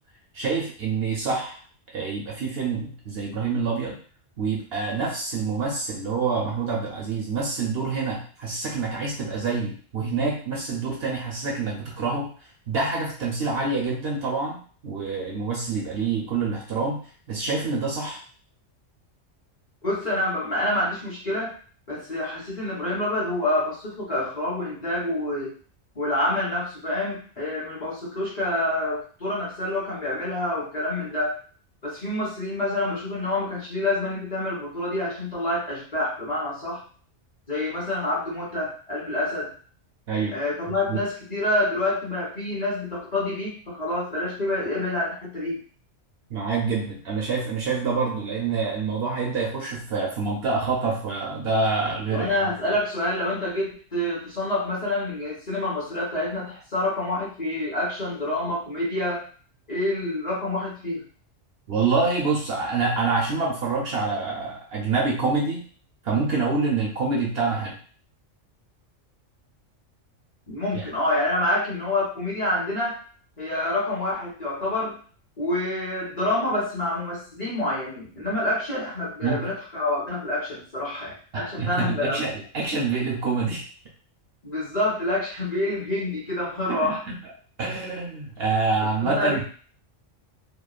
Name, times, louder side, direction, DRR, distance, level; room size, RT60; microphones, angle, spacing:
voice 1, 0.3-1.6 1.9-4.0 4.4-12.3 12.7-17.0 17.3-18.2 40.1-40.3 40.9-41.0 46.3-52.5 61.7-65.6 66.0-67.8 70.7-70.9 79.2-79.5 81.3-83.6 86.7-87.2 87.6-89.4, right 4 dB, 60° right, -2 dB, 0.7 m, -26 dB
voice 2, 19.8-21.5 21.9-25.5 25.9-31.4 31.8-36.8 37.5-39.5 40.3-45.6 52.1-59.2 59.7-61.0 70.5-73.0 73.4-75.0 75.4-82.2 84.4-87.0 89.0-89.4, left 1 dB, 40° left, -6 dB, 0.8 m, -27 dB
2.9 x 2.2 x 2.3 m, 0.43 s
omnidirectional pair, 1.3 m